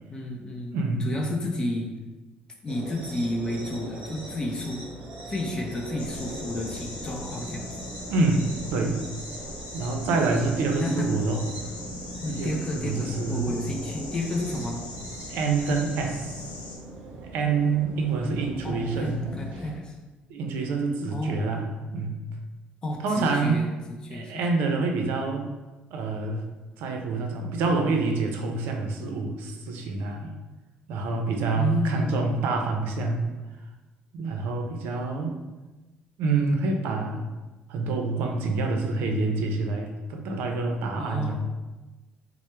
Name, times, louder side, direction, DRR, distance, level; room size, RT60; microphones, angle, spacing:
voice 1, 0.1-1.9 2.6-4.8 5.3-7.9 10.8-11.1 12.2-14.9 18.6-19.9 21.1-21.5 22.8-24.4 31.5-32.5 40.9-41.4, left 1 dB, 25° left, 1 dB, 0.5 m, -31 dB
voice 2, 0.7-1.1 8.1-9.0 9.7-11.4 12.4-13.6 15.3-16.4 17.3-19.3 20.3-21.7 21.9-22.2 23.0-23.7 24.1-25.5 25.9-26.5 26.8-30.3 30.9-33.3 34.1-35.4 36.2-37.3 37.7-41.4, right 3 dB, 80° right, 3 dB, 0.5 m, -27 dB
sound 1, 2.7-19.8, right 1 dB, 40° right, 0.9 m, -40 dB
sound 2, 6.0-16.8, left 2 dB, 45° left, 0.9 m, -41 dB
4.3 x 2.0 x 3.2 m, 1.2 s
cardioid pair, 155°, 3 cm